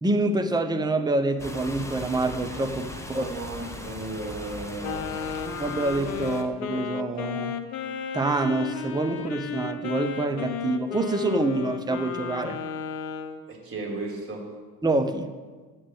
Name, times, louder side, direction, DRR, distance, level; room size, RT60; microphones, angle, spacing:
voice 1, 0.0-3.2 5.6-7.6 8.1-12.6 14.8-15.3, right 2 dB, 10° right, 0.9 m, -26 dB
sound 1, 1.4-6.4, left 1 dB, 5° left, 1.4 m, -39 dB
voice 2, 3.1-5.5 13.5-14.5, right 2 dB, 30° right, 3.8 m, -35 dB
Wind instrument woodwind instrument, 4.8-13.4, left 7 dB, 65° left, 1.0 m, -34 dB
9.5 x 7.8 x 8.0 m
figure-of-eight pair, 50°, 45 cm